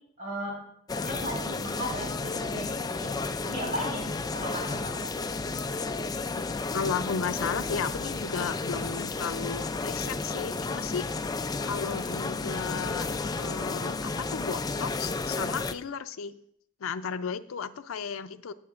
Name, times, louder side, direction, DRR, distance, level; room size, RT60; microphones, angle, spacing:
voice 1, 0.2-0.5 1.0-3.1 3.4-4.0 4.3-5.1, equal, 40° right, -3 dB, 3.6 m, -36 dB
sound 1, 0.9-15.7, left 3 dB, 20° left, 0.3 m, -32 dB
voice 2, 6.7-11.1 11.6-13.1 13.4-16.3 16.8-18.5, left 6 dB, 85° left, 10 dB, 0.5 m, -34 dB
18.0 x 6.8 x 2.5 m, 0.67 s
head